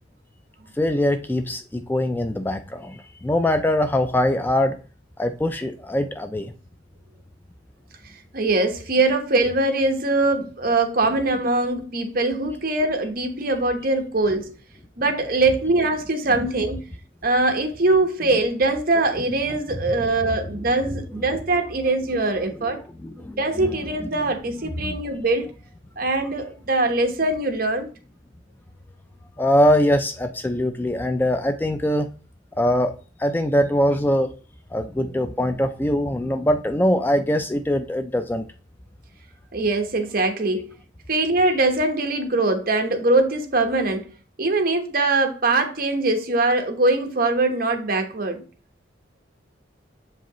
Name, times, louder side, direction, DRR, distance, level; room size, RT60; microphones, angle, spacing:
voice 1, 0.8-4.8 5.2-6.5 9.1-9.2 15.4-15.6 16.3-16.5 18.3-18.5 19.5-20.1 20.5-21.7 22.6-24.4 24.6-25.0 29.4-32.1 32.6-34.3 34.7-38.5 41.5-41.6, left 1 dB, 10° left, 0.3 m, -23 dB
voice 2, 8.3-14.5 15.0-16.8 17.2-22.8 23.4-25.5 26.0-27.9 39.5-40.7 41.1-44.1 44.4-48.4, right 2 dB, 50° right, 1.1 m, -22 dB
7.5 x 5.0 x 3.0 m
head